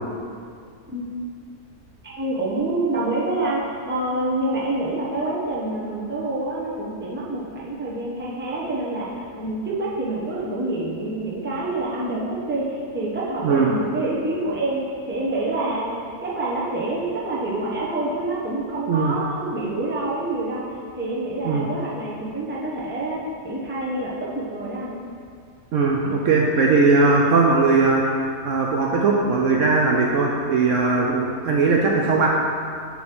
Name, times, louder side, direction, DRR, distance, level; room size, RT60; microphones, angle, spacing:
voice 1, 2.0-15.9 16.2-20.6 21.0-25.0, right 2 dB, 10° right, -6 dB, 0.8 m, -27 dB
voice 2, 25.7-28.0 28.4-32.3, right 3 dB, 65° right, -1 dB, 0.8 m, -19 dB
7.0 x 3.1 x 6.0 m, 2.3 s
omnidirectional pair, 1.6 m